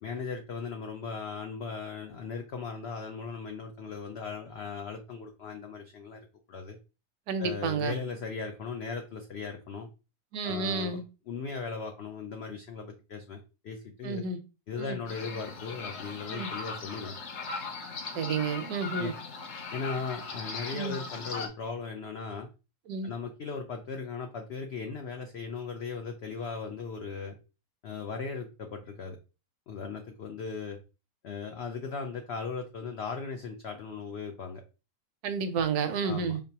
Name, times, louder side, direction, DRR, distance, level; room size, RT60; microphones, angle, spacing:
voice 1, 0.0-6.8 7.4-9.9 10.4-11.0 11.3-14.2 14.7-17.1 19.0-19.1 19.7-22.5 23.0-27.4 27.8-29.2 29.7-30.8 31.2-34.6 36.0-36.4, left 5 dB, 85° left, 0.5 m, -38 dB
voice 2, 7.3-8.0 10.3-11.0 14.0-14.4 14.8-15.0 16.3-16.5 18.1-19.1 20.7-21.0 22.9-23.1 35.2-36.4, right 5 dB, 80° right, 1.1 m, -31 dB
sound 1, 15.1-21.5, left 4 dB, 60° left, 0.9 m, -39 dB
5.2 x 2.0 x 2.7 m
omnidirectional pair, 1.6 m